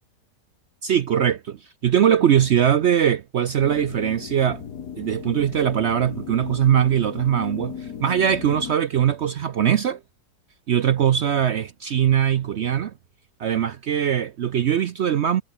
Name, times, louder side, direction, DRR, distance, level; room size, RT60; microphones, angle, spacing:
voice 1, 0.8-4.6 5.0-10.0 10.7-12.9 13.4-15.4, right 9 dB, 60° right, 0.7 m, -21 dB
sound 1, 3.6-8.7, left 7 dB, 70° left, 2.0 m, -36 dB
omnidirectional pair, 1.7 m